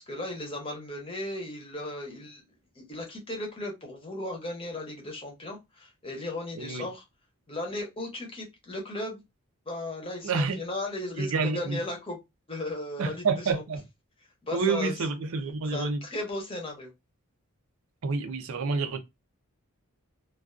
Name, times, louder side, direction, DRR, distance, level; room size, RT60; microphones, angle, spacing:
voice 1, 0.1-2.4 2.7-7.0 7.5-9.2 9.7-12.2 12.5-13.6 14.4-14.9 15.7-16.9, left 1 dB, 25° left, 0.7 m, -36 dB
voice 2, 10.2-10.6 11.2-11.8 13.0-13.8 14.5-16.0 18.0-19.0, right 4 dB, 75° right, 0.5 m, -28 dB
2.3 x 2.3 x 2.4 m
head